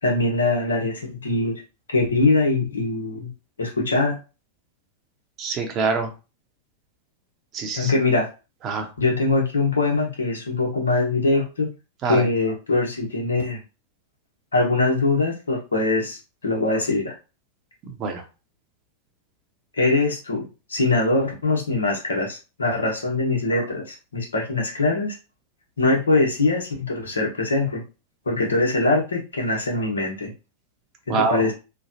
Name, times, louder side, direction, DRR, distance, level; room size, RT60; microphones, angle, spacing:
voice 1, 0.0-1.5 1.9-3.3 3.6-4.2 7.8-8.3 9.0-11.7 12.1-13.6 14.5-17.1 19.7-25.1 25.8-27.8 28.3-30.3 31.1-31.5, left 2 dB, 85° left, -1 dB, 1.2 m, -22 dB
voice 2, 5.4-6.1 7.5-7.9 8.6-8.9 12.0-12.3 17.9-18.2 31.1-31.5, right 4 dB, 40° right, 5 dB, 0.9 m, -25 dB
3.2 x 2.3 x 2.7 m, 0.30 s
hypercardioid pair, 100°, 0 cm